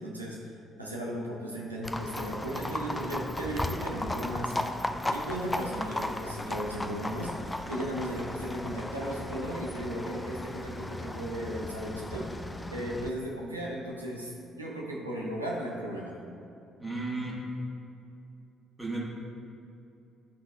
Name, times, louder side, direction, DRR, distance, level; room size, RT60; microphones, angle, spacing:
voice 1, 0.0-4.6 5.1-12.3 12.7-16.2, equal, 85° right, -4 dB, 0.7 m, -36 dB
Livestock farm animals working animals, 1.8-13.1, left 1 dB, 15° left, 0.4 m, -36 dB
voice 2, 16.8-17.4 18.8-19.0, right 2 dB, 15° right, -6 dB, 1.5 m, -33 dB
11.5 x 3.9 x 2.6 m, 2.7 s
figure-of-eight pair, 45°, 0 cm